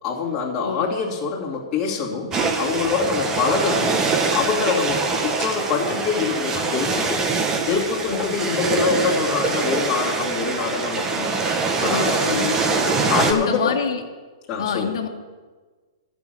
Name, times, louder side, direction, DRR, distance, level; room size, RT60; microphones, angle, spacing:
voice 1, 0.0-7.2 7.6-12.5 13.0-13.8 14.5-14.9, left 5 dB, 25° left, -6 dB, 2.6 m, -25 dB
sound 1, 2.3-13.3, right 4 dB, 20° right, 1.5 m, -23 dB
voice 2, 8.1-8.9 11.8-12.6 13.3-14.0 14.6-15.1, left 6 dB, 70° left, 4 dB, 1.8 m, -27 dB
12.0 x 6.2 x 9.1 m, 1.4 s
hypercardioid pair, 135°, 3 cm